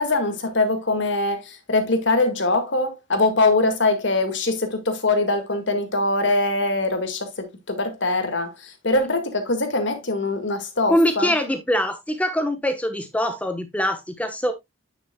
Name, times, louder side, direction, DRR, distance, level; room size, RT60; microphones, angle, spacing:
voice 1, 0.0-11.3, left 2 dB, 65° left, 1.8 m, -23 dB
voice 2, 10.9-14.5, equal, 5° left, 0.9 m, -23 dB
9.7 x 6.0 x 2.2 m
head